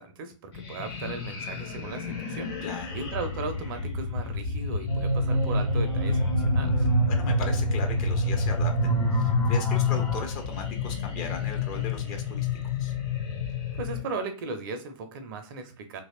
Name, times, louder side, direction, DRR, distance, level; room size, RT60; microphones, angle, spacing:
voice 1, 0.0-2.6 2.9-6.9 13.8-16.0, right 4 dB, 40° right, 7 dB, 0.6 m, -37 dB
sound 1, 0.5-14.0, left 6 dB, 50° left, 1.4 m, -30 dB
voice 2, 2.6-2.9 7.1-12.5 12.8-12.9, left 6 dB, 35° left, 3 dB, 0.7 m, -37 dB
sound 2, 4.9-10.2, right 3 dB, 75° left, 1.5 m, -27 dB
3.0 x 2.7 x 2.3 m, 0.37 s
figure-of-eight pair, 110°, 17 cm